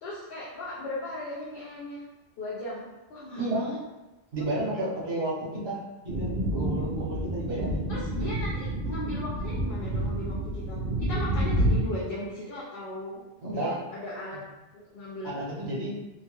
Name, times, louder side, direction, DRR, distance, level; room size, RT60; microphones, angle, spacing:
voice 1, 0.0-2.0 2.4-2.8 3.1-3.8 7.9-13.2 13.5-14.4 14.7-15.4, left 1 dB, 70° left, -6 dB, 0.8 m, -37 dB
voice 2, 3.3-3.7 4.3-8.3 13.4-13.8 15.2-16.0, right 1 dB, 65° right, -6 dB, 1.1 m, -32 dB
sound 1, 6.1-11.8, right 1 dB, 85° right, 0.8 m, -29 dB
2.9 x 2.2 x 2.9 m, 1.1 s
omnidirectional pair, 1.0 m